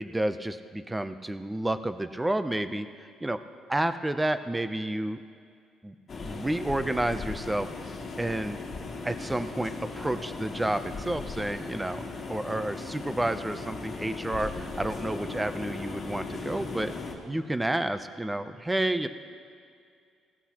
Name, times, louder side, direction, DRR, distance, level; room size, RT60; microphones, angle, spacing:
voice 1, 0.0-2.9 3.2-3.4 3.7-5.2 5.8-5.9 6.2-7.7 8.2-8.6 9.0-16.9 17.3-19.1, right 1 dB, 10° right, 10 dB, 0.5 m, -30 dB
sound 1, 6.1-17.1, left 3 dB, 35° left, 1.7 m, -38 dB
17.5 x 14.5 x 2.9 m, 2.3 s
cardioid pair, 120°, 0 cm